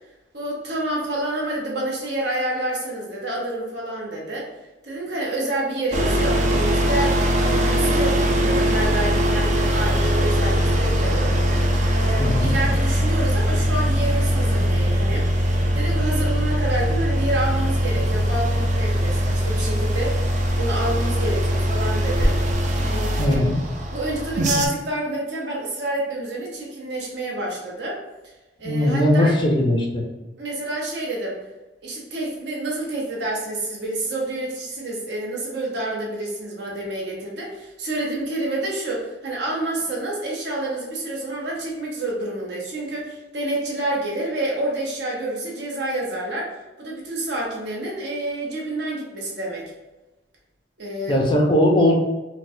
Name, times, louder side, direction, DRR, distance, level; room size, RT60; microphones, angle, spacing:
voice 1, 0.3-4.5 4.8-11.3 11.9-15.3 15.7-20.2 20.6-22.4 22.9-23.5 23.9-28.0 28.6-29.4 30.4-31.4 31.8-49.7 50.8-51.2, right 1 dB, 65° right, -3 dB, 0.9 m, -28 dB
sound 1, 5.9-24.7, equal, 40° right, 0.4 m, -21 dB
voice 2, 12.2-12.5 23.2-23.6 28.6-30.0 51.1-51.9, left 1 dB, 25° left, 0 dB, 0.4 m, -19 dB
4.0 x 2.1 x 2.6 m, 1.1 s
head